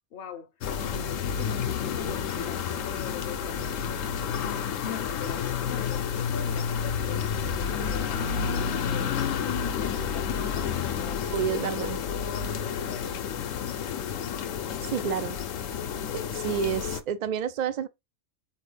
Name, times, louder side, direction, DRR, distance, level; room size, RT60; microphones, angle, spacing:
voice 1, 0.1-11.3 12.0-13.7 14.6-15.1, left 6 dB, 55° left, 0.8 m, -42 dB
sound 1, 0.6-17.0, left 7 dB, 80° left, 1.0 m, -30 dB
voice 2, 11.2-12.0 14.8-15.4 16.1-17.9, right 8 dB, 80° right, 0.4 m, -29 dB
4.4 x 3.1 x 3.2 m
omnidirectional pair, 1.3 m